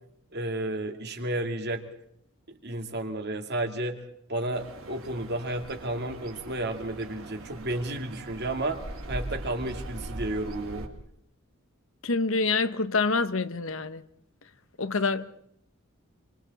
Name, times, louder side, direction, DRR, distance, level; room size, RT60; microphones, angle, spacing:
voice 1, 0.3-1.8 2.6-4.0 4.3-8.8 9.1-10.9, right 1 dB, 55° right, 2.4 m, -32 dB
sound 1, 4.5-10.9, right 1 dB, 85° right, 3.2 m, -40 dB
voice 2, 12.0-14.0 14.8-15.4, left 4 dB, 70° left, 1.1 m, -26 dB
27.5 x 24.5 x 4.2 m
head